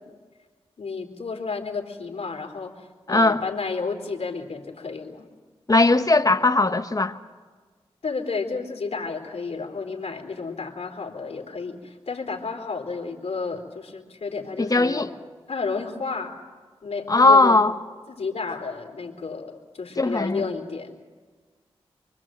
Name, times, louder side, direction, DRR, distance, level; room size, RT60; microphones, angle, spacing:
voice 1, 0.8-5.3 8.0-15.1 15.5-16.4 16.8-17.6 18.1-21.0, left 4 dB, 65° left, 3.6 m, -31 dB
voice 2, 3.1-3.4 5.7-7.2 14.6-15.1 17.1-17.7 20.0-20.4, left 3 dB, 35° left, 1.5 m, -18 dB
24.5 x 24.0 x 7.6 m
cardioid pair, 40°, 11 cm